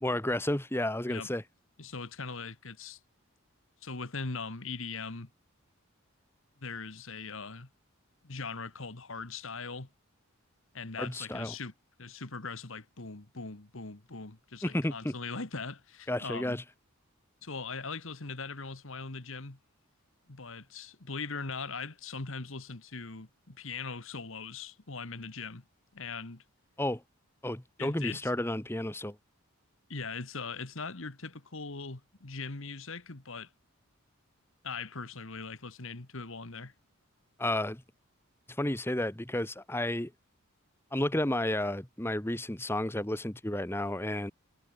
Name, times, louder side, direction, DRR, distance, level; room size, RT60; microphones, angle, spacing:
voice 1, 0.0-1.4 11.0-11.5 14.6-15.1 16.1-16.6 26.8-27.0 27.4-29.2 37.4-37.8 38.5-40.1 40.9-44.3, left 1 dB, 10° left, 1.1 m, -32 dB
voice 2, 1.8-3.0 3.8-5.3 6.6-7.7 8.2-9.9 10.7-11.7 12.0-16.6 17.4-19.6 20.3-25.6 25.9-26.4 27.8-28.3 29.9-33.5 34.6-36.7, left 4 dB, 65° left, 1.7 m, -40 dB
head